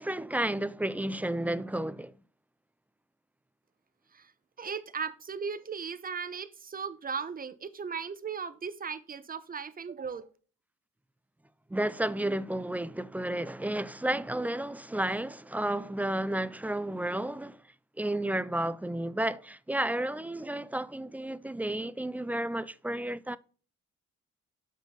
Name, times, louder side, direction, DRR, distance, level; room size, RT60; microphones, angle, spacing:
voice 1, 0.0-2.1 11.7-17.6 18.0-23.4, right 1 dB, 5° right, 0.3 m, -32 dB
voice 2, 4.6-10.3, right 6 dB, 30° right, 0.8 m, -37 dB
7.4 x 5.2 x 3.7 m
cardioid pair, 90°, 30 cm